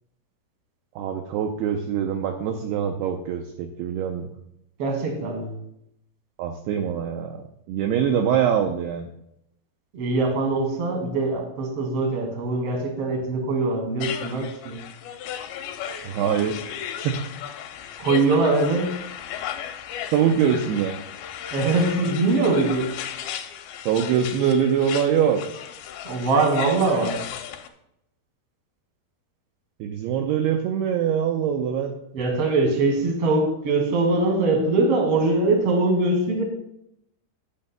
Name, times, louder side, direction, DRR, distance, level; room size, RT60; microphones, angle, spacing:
voice 1, 1.0-4.3 6.4-7.3 7.7-9.1 16.0-16.6 17.0-17.2 20.1-20.9 23.9-25.4 29.8-31.9, right 8 dB, 80° right, 4 dB, 2.4 m, -23 dB
voice 2, 4.8-5.5 9.9-14.8 18.0-18.9 21.5-22.9 26.0-27.2 32.1-36.4, right 3 dB, 45° right, 1 dB, 2.4 m, -22 dB
sound 1, 14.0-27.7, left 10 dB, 80° left, 2.2 m, -35 dB
14.0 x 9.2 x 2.2 m, 0.79 s
omnidirectional pair, 5.0 m